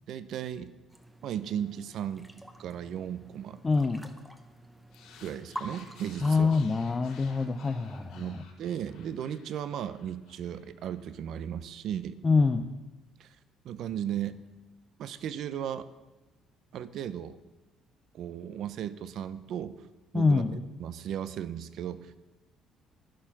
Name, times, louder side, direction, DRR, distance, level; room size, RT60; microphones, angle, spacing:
voice 1, 0.1-0.7 1.2-2.3 2.6-3.6 5.2-6.6 8.1-12.2 13.2-13.3 13.6-14.4 15.0-15.9 16.7-17.4 18.1-19.8 20.1-22.0, right 9 dB, 55° right, 14 dB, 0.6 m, -36 dB
sound 1, 0.9-8.3, right 1 dB, 5° right, 0.8 m, -48 dB
voice 2, 3.6-4.1 6.2-8.2 12.2-12.7 20.1-20.5, left 4 dB, 20° left, 7 dB, 0.4 m, -25 dB
sound 2, 4.9-11.4, left 6 dB, 80° left, 4.1 m, -55 dB
11.5 x 11.0 x 5.9 m, 1.1 s
cardioid pair, 170°, 0 cm